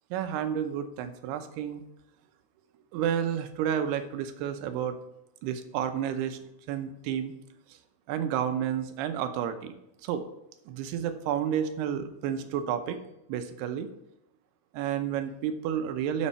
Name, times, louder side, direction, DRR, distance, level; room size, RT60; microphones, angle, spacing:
voice 1, 0.1-1.8 2.9-5.0 5.4-6.4 6.7-7.3 8.1-9.7 10.0-10.2 10.7-13.0 13.3-13.9 14.7-16.3, right 9 dB, 90° right, 9 dB, 2.8 m, -30 dB
12.5 x 5.5 x 4.3 m, 0.83 s
omnidirectional pair, 4.5 m